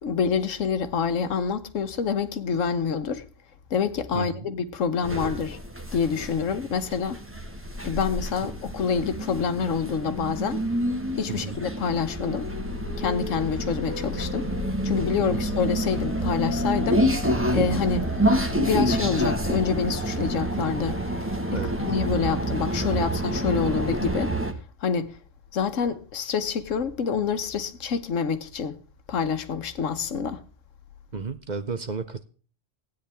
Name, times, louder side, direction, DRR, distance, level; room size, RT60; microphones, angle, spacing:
voice 1, 0.0-3.2 3.7-5.6 5.9-7.2 7.8-10.6 11.2-12.5 13.0-14.5 14.8-17.0 17.5-18.1 18.7-21.0 21.5-24.3 24.8-25.1 25.5-28.8 29.1-30.4, left 6 dB, 85° left, 1.3 m, -27 dB
voice 2, 4.1-4.5 11.3-11.6 15.3-15.6 21.5-21.8 31.1-32.2, right 5 dB, 45° right, 0.7 m, -33 dB
sound 1, 5.0-24.5, right 1 dB, 10° right, 1.2 m, -28 dB
sound 2, 11.8-23.7, left 6 dB, 20° left, 1.5 m, -39 dB
16.0 x 9.4 x 3.4 m
omnidirectional pair, 1.3 m